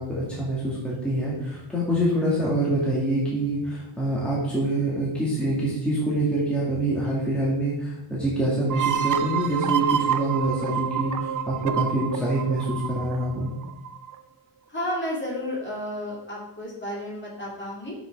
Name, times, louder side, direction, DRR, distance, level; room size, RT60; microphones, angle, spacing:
voice 1, 0.0-13.5, right 1 dB, ahead, -7 dB, 2.2 m, -25 dB
sound 1, 8.7-14.1, right 9 dB, 40° right, 0.6 m, -28 dB
voice 2, 14.7-17.9, left 1 dB, 20° left, -3 dB, 2.6 m, -32 dB
6.2 x 5.8 x 5.4 m, 0.86 s
wide cardioid pair, 125°, 49 cm